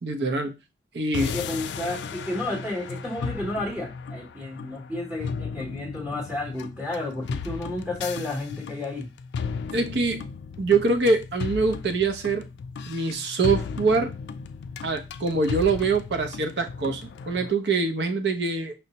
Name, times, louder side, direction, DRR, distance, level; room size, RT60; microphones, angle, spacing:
voice 1, 0.0-0.5 0.9-1.3 9.7-10.2 10.6-12.5 12.9-14.1 14.8-18.7, right 3 dB, 75° right, 6 dB, 0.6 m, -24 dB
sound 1, 1.1-17.5, left 5 dB, 75° left, 0.3 m, -35 dB
voice 2, 1.2-9.1, left 2 dB, 10° right, -3 dB, 0.8 m, -32 dB
5.5 x 2.1 x 2.8 m, 0.27 s
head